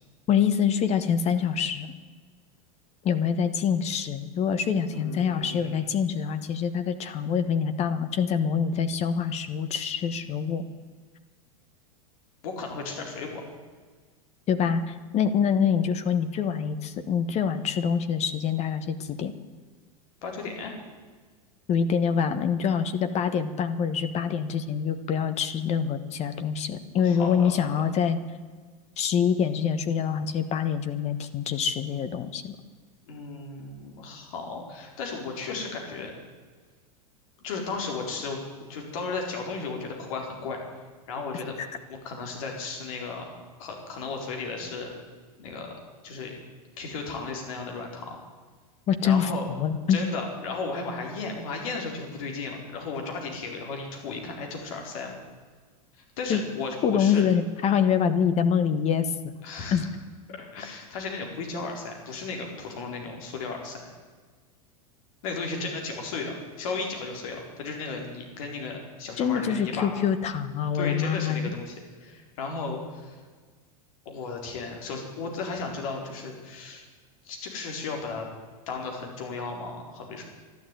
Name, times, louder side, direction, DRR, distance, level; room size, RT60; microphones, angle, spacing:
voice 1, 0.3-1.9 3.0-10.7 14.5-19.3 21.7-28.2 29.0-32.6 41.6-41.7 48.9-50.0 56.3-56.4 56.8-59.1 59.7-59.8 69.2-71.5, left 7 dB, 35° left, 11 dB, 1.3 m, -25 dB
voice 2, 4.9-5.8 12.4-13.4 20.2-20.8 27.0-27.9 33.1-36.1 37.4-38.4 38.7-40.6 41.1-41.6 41.9-44.9 45.4-45.7 46.0-46.3 46.8-48.2 49.0-49.4 49.9-55.2 56.2-57.2 59.4-59.9 60.3-63.9 65.2-69.9 70.7-73.2 74.0-76.8 77.2-78.3 78.7-80.2, left 4 dB, 65° left, 1 dB, 4.3 m, -35 dB
12.5 x 11.5 x 9.2 m, 1.5 s
hypercardioid pair, 105°, 19 cm